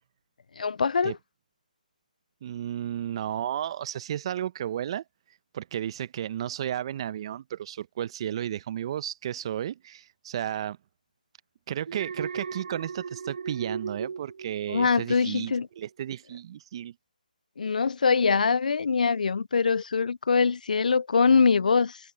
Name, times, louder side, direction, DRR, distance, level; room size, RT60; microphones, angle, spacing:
voice 1, 0.6-1.1 14.7-15.7 17.6-22.0, left 5 dB, 65° left, 0.4 m, -23 dB
voice 2, 2.4-5.0 5.5-10.8 11.7-16.9, right 10 dB, 40° right, 1.0 m, -33 dB
Alarm, 11.9-15.2 15.6-15.9, right 6 dB, 60° right, 0.4 m, -37 dB
figure-of-eight pair, 150°, 5 cm